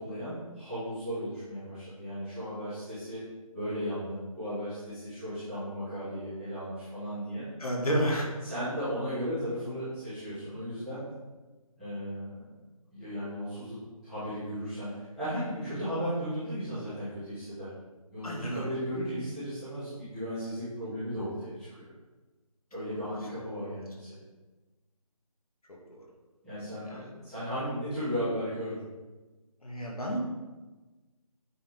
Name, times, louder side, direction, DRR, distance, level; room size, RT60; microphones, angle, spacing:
voice 1, 0.0-3.2 3.5-7.5 8.5-11.0 11.8-12.5 12.9-13.7 14.0-14.9 15.1-17.7 18.1-21.5 21.8-21.9 22.7-24.2 26.4-28.7, equal, ahead, -23 dB, 0.6 m, -35 dB
voice 2, 7.6-8.3 18.2-18.7 25.7-26.0 26.8-27.1 29.6-30.2, right 1 dB, 80° left, -2 dB, 2.1 m, -31 dB
9.0 x 3.7 x 4.0 m, 1.2 s
figure-of-eight pair, 170°, 19 cm